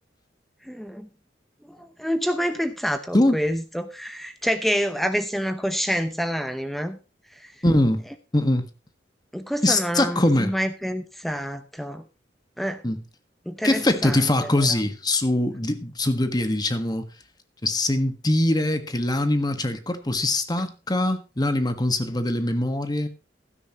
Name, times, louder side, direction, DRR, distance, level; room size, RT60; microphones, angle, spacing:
voice 1, 0.7-1.1 1.7-7.0 7.4-7.5 9.3-12.0 12.6-12.8 13.5-14.3, equal, ahead, 0.8 m, -27 dB
voice 2, 7.6-8.0 8.3-8.6 9.6-10.5 12.8-13.0 13.6-17.0 17.6-23.1, left 1 dB, 25° left, 1.5 m, -22 dB
16.0 x 12.5 x 3.0 m
head